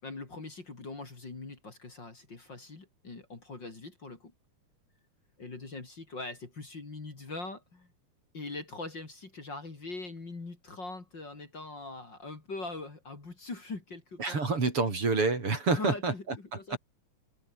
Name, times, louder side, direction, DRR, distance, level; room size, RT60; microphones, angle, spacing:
voice 1, 0.0-4.3 5.4-7.9 8.3-14.4 15.7-16.8, left 3 dB, 35° left, 4.1 m, -42 dB
voice 2, 14.2-16.4 16.7-16.8, right 3 dB, 45° right, 5.2 m, -28 dB
omnidirectional pair, 3.6 m